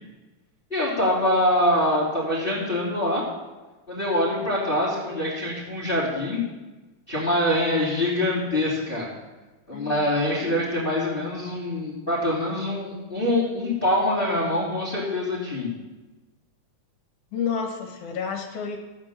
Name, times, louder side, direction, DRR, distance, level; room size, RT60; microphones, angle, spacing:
voice 1, 0.7-3.2 3.9-6.4 7.1-9.1 9.7-15.7, left 1 dB, 15° left, -6 dB, 3.2 m, -24 dB
voice 2, 17.3-18.8, left 6 dB, 65° left, 4 dB, 2.8 m, -30 dB
15.5 x 8.9 x 7.3 m, 1.1 s
omnidirectional pair, 3.8 m